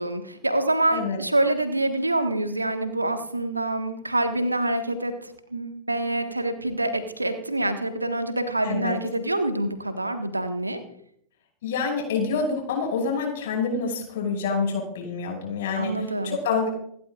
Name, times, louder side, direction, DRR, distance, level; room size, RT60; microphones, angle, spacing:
voice 1, 0.0-10.8 15.7-16.4, right 1 dB, 85° right, 8 dB, 1.6 m, -26 dB
voice 2, 8.6-8.9 11.6-16.7, left 5 dB, 55° left, 1 dB, 6.3 m, -27 dB
28.5 x 12.0 x 2.5 m, 0.68 s
figure-of-eight pair, 90°, 0 cm